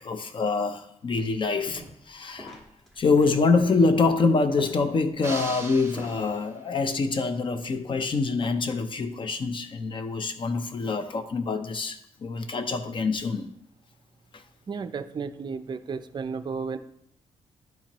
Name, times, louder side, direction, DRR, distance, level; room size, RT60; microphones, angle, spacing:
voice 1, 0.0-2.6 3.0-13.5 14.3-14.4, left 4 dB, 40° left, 9 dB, 0.6 m, -25 dB
sound 1, 1.2-2.1 2.4-6.3, equal, 5° left, 1.4 m, -47 dB
sound 2, 5.2-6.8, right 3 dB, 20° right, 1.0 m, -39 dB
voice 2, 14.7-16.8, right 5 dB, 35° right, 10 dB, 0.5 m, -33 dB
10.5 x 4.4 x 3.0 m, 0.72 s
cardioid pair, 110°, 13 cm